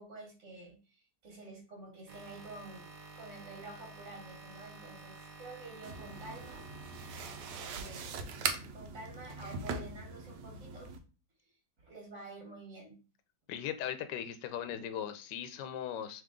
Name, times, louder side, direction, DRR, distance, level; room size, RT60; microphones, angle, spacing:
voice 1, 0.0-6.6 7.7-8.3 8.6-10.9 11.8-13.0, right 2 dB, 50° right, -2 dB, 1.7 m, -49 dB
sound 1, 2.1-8.3, right 3 dB, 65° right, 1.5 m, -51 dB
sound 2, 5.8-11.0, right 5 dB, 85° right, 1.3 m, -40 dB
voice 2, 13.5-16.2, left 9 dB, 80° left, 9 dB, 1.2 m, -38 dB
3.5 x 3.3 x 3.6 m, 0.34 s
omnidirectional pair, 1.8 m